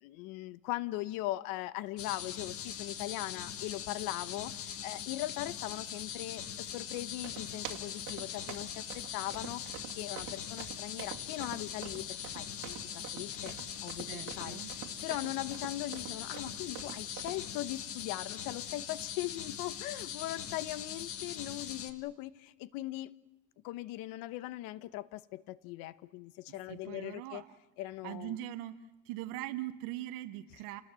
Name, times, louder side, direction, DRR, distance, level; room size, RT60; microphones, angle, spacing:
voice 1, 0.0-9.6 9.9-13.5 13.8-23.1 23.6-27.4 27.8-28.4, left 16 dB, 80° left, 16 dB, 1.0 m, -40 dB
sound 1, 2.0-21.9, left 9 dB, 40° left, 1.6 m, -42 dB
sound 2, 6.9-17.5, right 12 dB, 65° right, 2.5 m, -47 dB
voice 2, 14.1-14.7 26.5-27.5 28.0-28.8 29.0-30.8, right 14 dB, 85° right, 8 dB, 1.1 m, -41 dB
29.5 x 19.5 x 7.6 m, 1.0 s
cardioid pair, 155°, 34 cm